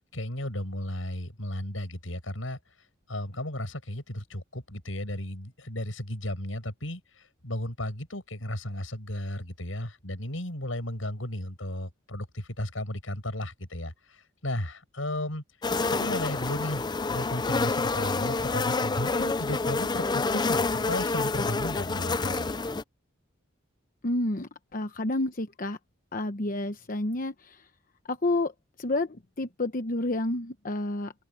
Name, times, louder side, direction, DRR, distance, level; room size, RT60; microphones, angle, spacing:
voice 1, 0.1-2.6 3.1-7.0 7.4-14.2 14.4-15.4 15.9-22.5, left 1 dB, 85° left, 7.0 m, -34 dB
sound 1, 15.6-22.8, left 3 dB, 20° left, 0.5 m, -28 dB
voice 2, 24.0-25.8 26.1-27.7 28.1-31.1, left 2 dB, 45° left, 1.0 m, -30 dB
open air
head